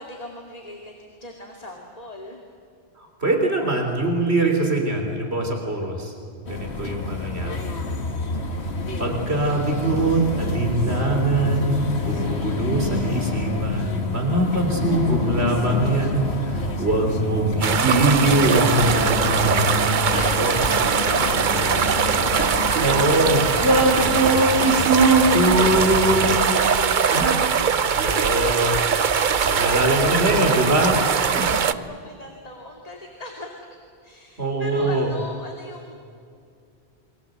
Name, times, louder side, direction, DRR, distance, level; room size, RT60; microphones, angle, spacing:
voice 1, 0.0-2.4 6.5-6.9 14.6-14.8 20.8-23.2 23.6-24.4 25.8-28.9 29.3-33.5 34.0-36.0, left 2 dB, 35° left, 1 dB, 2.6 m, -39 dB
voice 2, 3.0-6.1 6.4-7.6 9.0-20.7 22.8-26.6 27.1-27.3 28.0-28.9 29.4-30.9 31.4-31.5 34.4-35.1, right 2 dB, 85° right, 2 dB, 4.0 m, -22 dB
sound 1, 6.5-26.4, left 3 dB, 90° left, 2.1 m, -28 dB
sound 2, 17.6-31.7, right 7 dB, 50° right, 0.9 m, -21 dB
28.5 x 23.5 x 8.0 m, 2.5 s
omnidirectional pair, 1.1 m